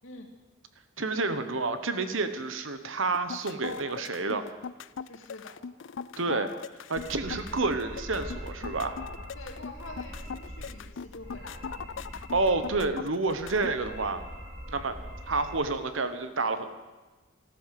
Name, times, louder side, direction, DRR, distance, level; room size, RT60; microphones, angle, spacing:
voice 1, 1.0-4.4 6.2-6.5 6.9-9.0 12.3-14.2 14.7-14.9 15.3-16.7, right 3 dB, 75° right, 10 dB, 1.2 m, -29 dB
sound 1, 3.1-13.7, left 6 dB, 65° left, 0.4 m, -39 dB
voice 2, 5.0-5.6 9.3-11.8 14.8-15.0, left 2 dB, 85° left, 2 dB, 2.4 m, -46 dB
sound 2, 6.9-10.8 11.0-12.9 13.2-15.6, equal, 30° right, 6.1 m, -43 dB
14.0 x 13.0 x 7.7 m, 1.2 s
head